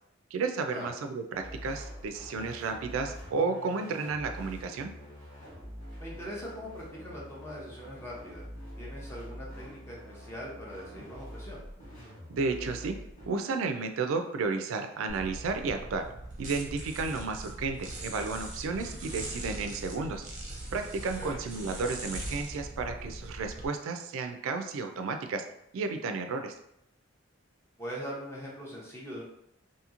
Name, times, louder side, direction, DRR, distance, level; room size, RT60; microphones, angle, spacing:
voice 1, 0.3-4.9 12.3-13.0 13.3-16.0 16.4-20.2 20.7-25.4 25.7-26.5, right 4 dB, 75° right, 6 dB, 0.3 m, -32 dB
sound 1, 1.3-13.3, equal, 40° left, 1.3 m, -45 dB
voice 2, 6.0-8.5 8.8-11.6 21.2-21.4 27.8-29.2, equal, 10° left, -4 dB, 0.6 m, -41 dB
sound 2, 15.1-23.7, right 1 dB, 35° right, 0.6 m, -41 dB
2.9 x 2.7 x 2.4 m, 0.80 s
head